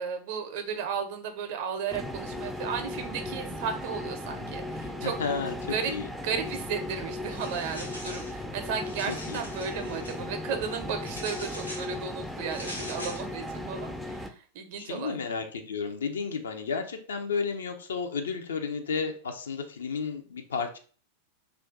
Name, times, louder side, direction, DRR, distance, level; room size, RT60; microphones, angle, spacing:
voice 1, 0.0-5.1 5.7-5.9 6.2-15.2, right 6 dB, 50° right, 5 dB, 0.6 m, -34 dB
sound 1, 1.9-14.3, left 1 dB, ahead, 0.3 m, -37 dB
voice 2, 5.0-6.1 9.1-9.5 14.8-20.8, left 5 dB, 65° left, 6 dB, 0.4 m, -32 dB
sound 2, 7.3-8.4 8.7-10.2 11.0-11.9 12.5-13.2, left 1 dB, 85° left, 0.8 m, -42 dB
2.3 x 2.2 x 3.7 m, 0.41 s
figure-of-eight pair, 90°, 0 cm